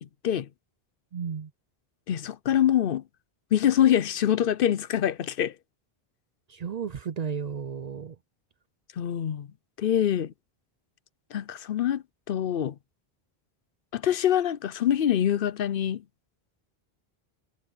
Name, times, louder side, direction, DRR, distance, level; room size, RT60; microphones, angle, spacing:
voice 1, 1.1-1.5 6.5-8.2, right 7 dB, 50° right, 0.5 m, -33 dB
voice 2, 2.1-3.0 3.5-5.6 9.0-9.5 9.8-10.3 11.3-12.7 13.9-16.0, left 10 dB, 65° left, 0.8 m, -25 dB
omnidirectional pair, 1.0 m